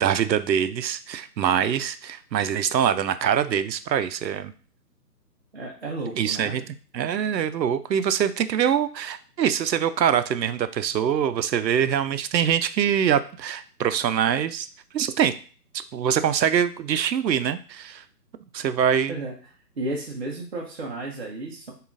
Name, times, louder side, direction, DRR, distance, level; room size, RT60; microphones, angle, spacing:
voice 1, 0.0-4.5 6.2-6.6 6.9-14.7 14.9-15.3 15.7-18.0 18.5-19.2, right 9 dB, 80° right, 12 dB, 0.6 m, -24 dB
voice 2, 5.5-6.6 19.1-19.4 19.8-21.7, right 2 dB, 40° right, -2 dB, 0.6 m, -32 dB
6.6 x 2.4 x 2.5 m, 0.40 s
hypercardioid pair, 160°, 50 cm